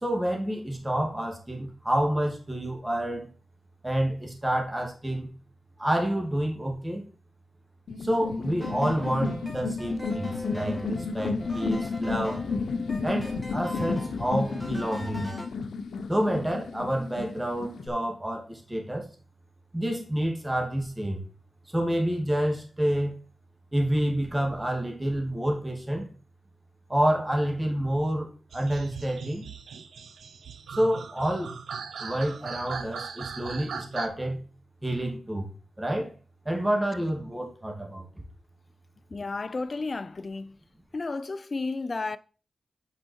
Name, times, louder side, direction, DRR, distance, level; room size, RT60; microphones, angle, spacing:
voice 1, 0.0-3.3 3.8-5.3 5.8-7.0 8.0-12.4 13.0-15.4 16.1-19.1 19.7-21.3 21.7-23.1 23.7-26.0 26.9-29.5 30.7-31.5 32.0-34.4 34.8-35.5 35.8-36.1 36.4-38.1, right 1 dB, 15° right, 2.5 m, -28 dB
sound 1, 7.9-17.9, left 4 dB, 90° left, 0.8 m, -32 dB
sound 2, 8.6-15.5, equal, ahead, 2.7 m, -40 dB
sound 3, 28.5-34.1, right 6 dB, 90° right, 0.7 m, -39 dB
voice 2, 39.1-40.6 40.9-42.2, left 3 dB, 45° left, 0.6 m, -32 dB
8.5 x 5.5 x 4.6 m
cardioid pair, 65°, 0 cm